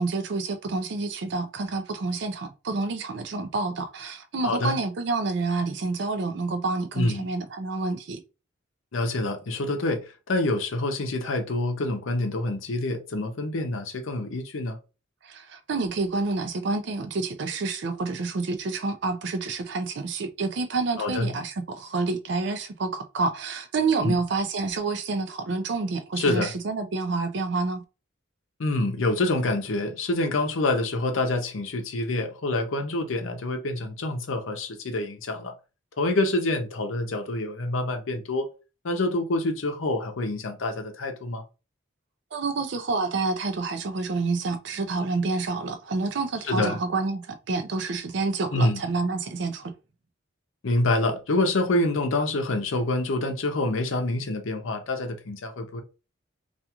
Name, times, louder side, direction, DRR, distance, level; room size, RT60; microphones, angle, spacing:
voice 1, 0.0-8.2 15.2-27.8 42.3-49.7, right 3 dB, 55° right, 0.4 m, -28 dB
voice 2, 4.4-4.8 6.9-7.3 8.9-14.8 21.0-21.3 24.0-24.2 26.2-26.5 28.6-35.5 36.0-38.5 38.8-41.4 46.5-46.8 48.5-48.8 50.6-55.8, left 2 dB, 70° left, 0.6 m, -26 dB
2.4 x 2.3 x 2.8 m
head